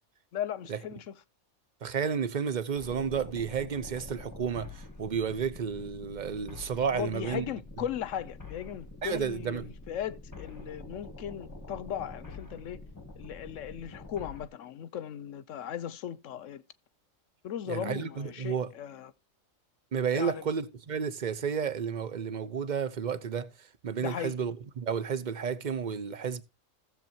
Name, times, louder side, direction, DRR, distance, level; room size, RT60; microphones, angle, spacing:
voice 1, 0.3-1.1 6.9-12.8 13.2-16.6 17.4-19.1 20.1-20.5 24.0-24.3, left 10 dB, 75° left, 1.0 m, -37 dB
voice 2, 1.8-7.5 9.0-9.7 17.7-18.7 19.9-23.5 23.8-26.4, right 7 dB, 40° right, 0.8 m, -32 dB
sound 1, 2.8-14.5, left 3 dB, 15° left, 1.2 m, -46 dB
16.0 x 7.4 x 2.8 m
omnidirectional pair, 1.3 m